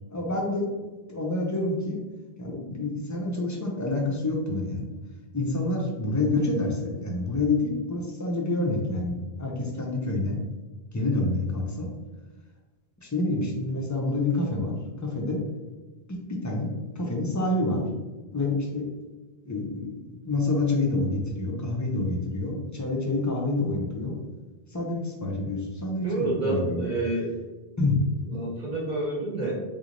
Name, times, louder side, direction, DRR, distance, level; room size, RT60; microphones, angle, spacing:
voice 1, 0.1-0.7 1.1-2.0 2.4-4.8 5.3-10.4 10.9-11.9 13.0-15.4 16.1-16.7 17.0-17.8 18.3-18.8 19.4-24.2 24.7-26.9 27.8-28.0, left 2 dB, 25° left, -1 dB, 0.5 m, -27 dB
voice 2, 26.0-27.3 28.3-29.5, right 2 dB, 40° right, -6 dB, 1.3 m, -29 dB
3.8 x 3.1 x 2.5 m, 1.2 s
omnidirectional pair, 1.1 m